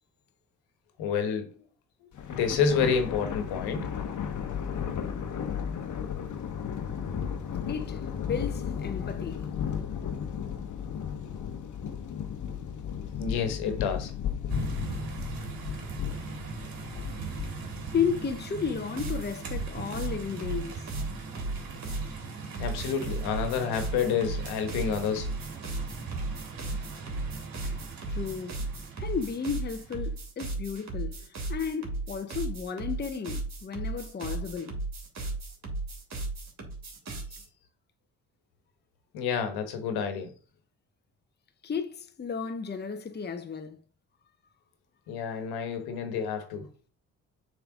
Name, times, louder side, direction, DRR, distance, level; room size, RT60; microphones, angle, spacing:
voice 1, 1.0-1.5 2.3-3.8 13.2-14.1 22.6-25.3 39.1-40.3 45.1-46.7, left 6 dB, 75° left, 1.4 m, -29 dB
Thunder, 2.1-18.7, left 8 dB, 50° left, 1.1 m, -35 dB
voice 2, 7.7-9.5 17.9-20.9 28.1-28.6 29.0-34.8 41.6-43.8, left 6 dB, 25° left, 0.8 m, -33 dB
sound 1, 14.5-30.0, right 4 dB, 60° right, 2.1 m, -40 dB
sound 2, 19.0-22.1 22.5-37.4, right 2 dB, 45° right, 2.6 m, -35 dB
6.9 x 3.8 x 4.9 m
hypercardioid pair, 50°, 39 cm